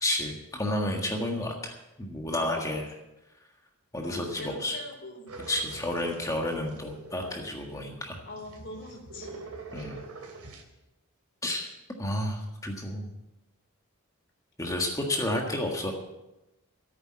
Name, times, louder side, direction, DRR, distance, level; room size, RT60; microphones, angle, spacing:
voice 1, 0.0-2.8 3.9-4.8 5.5-8.2 9.7-10.0 11.4-11.7 12.0-13.1 14.6-15.9, left 1 dB, 15° left, 1 dB, 1.6 m, -31 dB
voice 2, 2.3-2.8 4.0-5.3 8.3-9.5, left 2 dB, 55° left, 0 dB, 4.0 m, -42 dB
sound 1, 5.3-10.6, right 3 dB, 80° right, 2.9 m, -45 dB
15.0 x 9.0 x 7.5 m, 0.96 s
head